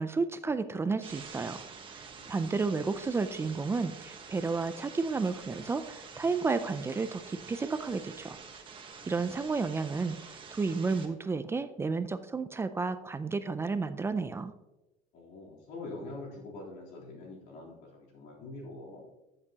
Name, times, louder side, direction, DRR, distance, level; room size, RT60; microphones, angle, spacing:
voice 1, 0.0-1.6 2.3-8.4 9.1-14.5, right 4 dB, 15° right, 11 dB, 0.4 m, -32 dB
sound 1, 1.0-11.1, right 5 dB, 35° right, 1.2 m, -48 dB
voice 2, 2.2-2.5 15.1-19.1, left 2 dB, 90° left, -3 dB, 3.4 m, -44 dB
13.0 x 6.7 x 2.9 m, 1.0 s
cardioid pair, 145°, 16 cm